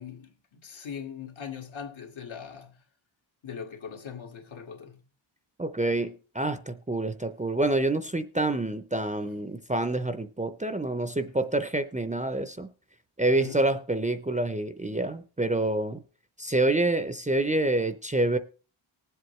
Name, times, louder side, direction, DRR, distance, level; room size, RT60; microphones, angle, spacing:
voice 1, 0.0-2.8 3.4-5.0 13.2-13.6, left 7 dB, 70° left, 2.0 m, -41 dB
voice 2, 5.6-12.7 13.2-16.0 16.4-18.4, right 2 dB, 15° right, 0.6 m, -27 dB
19.5 x 7.9 x 3.2 m
wide cardioid pair, 145°, 48 cm